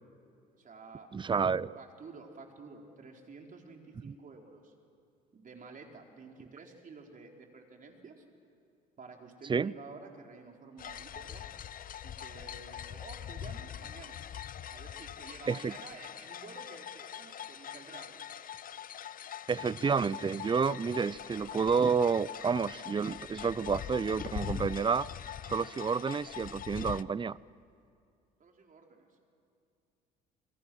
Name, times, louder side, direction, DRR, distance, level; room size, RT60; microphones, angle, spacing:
voice 1, 0.5-1.1 1.8-4.7 5.3-8.2 9.0-11.5 12.0-14.2 14.7-18.2 28.4-29.1, right 4 dB, 40° right, 2 dB, 4.3 m, -51 dB
voice 2, 1.1-1.7 4.0-4.1 9.5-9.7 15.5-15.7 19.5-25.1 25.4-27.4, right 5 dB, 25° right, 21 dB, 0.6 m, -30 dB
sound 1, 10.8-27.0, left 10 dB, 45° left, 0.7 m, -43 dB
28.0 x 22.5 x 6.3 m, 2.4 s
hypercardioid pair, 65°, 20 cm